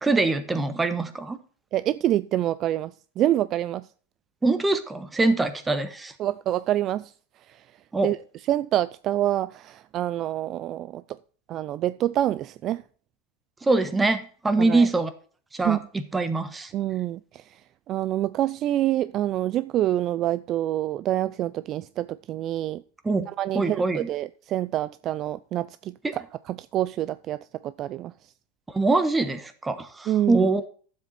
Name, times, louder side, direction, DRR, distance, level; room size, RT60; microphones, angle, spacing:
voice 1, 0.0-1.4 4.4-6.1 7.9-8.1 13.6-15.1 15.5-16.7 23.0-23.3 23.5-24.1 26.0-26.1 28.7-30.6, right 3 dB, 10° right, 1.2 m, -24 dB
voice 2, 1.7-3.9 6.2-7.1 7.5-7.7 8.0-8.2 8.5-11.2 11.5-12.8 14.6-14.9 15.6-15.8 16.7-17.6 17.9-22.8 23.4-26.2 26.5-28.3 30.1-30.5, right 13 dB, 40° right, 0.4 m, -27 dB
12.0 x 7.6 x 4.3 m
supercardioid pair, 130°, 0 cm